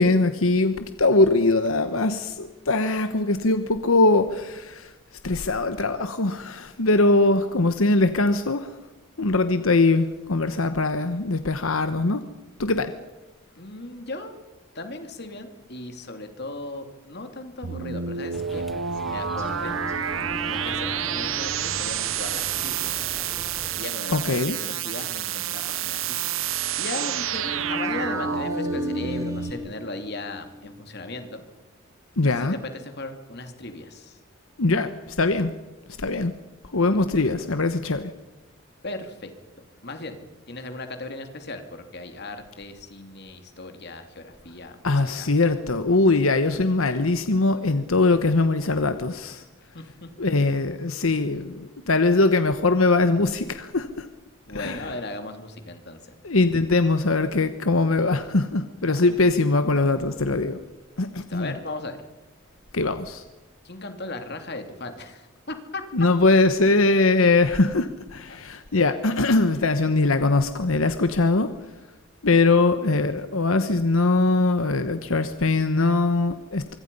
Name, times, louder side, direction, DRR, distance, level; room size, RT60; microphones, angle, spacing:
voice 1, 0.0-4.9 5.2-8.8 9.2-12.2 12.6-12.9 24.1-24.6 32.2-32.6 34.6-35.5 36.0-36.3 36.7-38.1 44.8-49.4 50.2-54.1 54.5-54.9 56.2-60.6 61.0-61.5 62.7-63.2 65.9-71.7 72.2-76.8, left 3 dB, 85° left, 9 dB, 1.2 m, -21 dB
voice 2, 7.3-7.6 13.6-14.3 14.7-18.7 19.0-19.8 20.4-23.1 23.8-26.2 26.8-31.4 32.2-34.2 37.0-37.2 38.8-39.3 39.6-45.3 49.7-50.1 54.5-56.2 58.9-59.1 61.2-62.0 63.6-65.8 68.3-68.4, left 2 dB, 50° left, 6 dB, 3.0 m, -37 dB
sound 1, 17.6-29.5, right 8 dB, 75° right, 1.0 m, -29 dB
sound 2, 18.3-23.9, equal, ahead, 1.0 m, -41 dB
Singing, 19.4-23.4 27.3-31.4, left 1 dB, 15° right, 4.0 m, -36 dB
25.0 x 24.5 x 5.5 m, 1.1 s
head